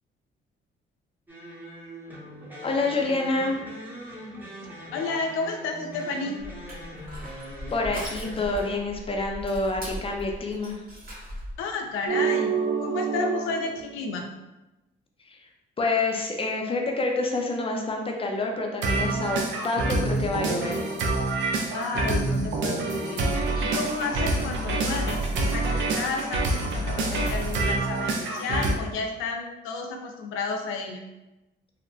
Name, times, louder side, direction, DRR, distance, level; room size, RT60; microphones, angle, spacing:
sound 1, 1.3-8.8, equal, 10° right, 0.7 m, -41 dB
voice 1, 2.6-3.6 7.7-10.8 15.3-15.4 15.8-20.8, left 3 dB, 30° left, 1 dB, 0.5 m, -27 dB
voice 2, 4.9-6.4 11.6-14.3 21.7-31.0, left 4 dB, 85° left, 3 dB, 0.4 m, -32 dB
Crushing, 6.4-11.6, equal, 50° right, 1.2 m, -39 dB
sound 2, 12.1-13.8 18.8-28.7, right 3 dB, 70° right, 0.5 m, -26 dB
2.7 x 2.1 x 2.6 m, 1.0 s
cardioid pair, 90°, 20 cm